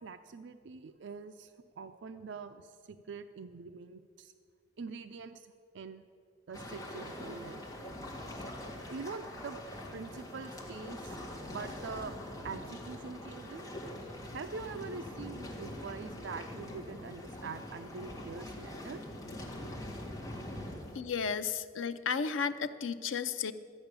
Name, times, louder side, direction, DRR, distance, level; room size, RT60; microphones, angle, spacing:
voice 1, 0.0-4.3 4.8-6.0 6.5-7.6 8.9-9.6 9.9-11.2 11.5-12.2 12.4-13.6 14.3-19.0, right 4 dB, 65° right, 9 dB, 0.4 m, -44 dB
sound 1, 6.5-21.0, left 1 dB, 20° left, 1.9 m, -43 dB
voice 2, 20.9-23.5, left 6 dB, 85° left, 11 dB, 0.6 m, -33 dB
13.0 x 8.7 x 6.8 m, 2.2 s
head